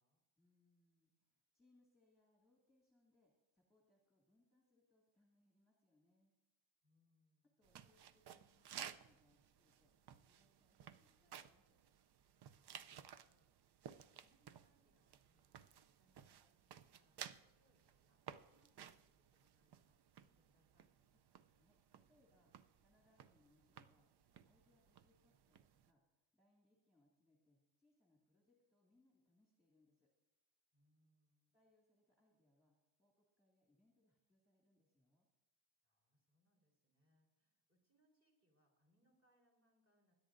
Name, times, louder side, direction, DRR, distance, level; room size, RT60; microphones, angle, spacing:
voice 1, 0.4-6.3 7.6-11.8 21.1-21.2 21.5-24.1 24.4-30.1 31.5-35.3, left 2 dB, ahead, -3 dB, 2.0 m, -78 dB
voice 2, 6.8-7.5 12.5-21.0 30.7-31.6 35.8-40.1, equal, 30° right, -1 dB, 3.8 m, -81 dB
sound 1, 7.6-25.9, right 9 dB, 55° right, 0.5 m, -58 dB
21.5 x 10.5 x 2.5 m, 0.99 s
wide cardioid pair, 150°, 50 cm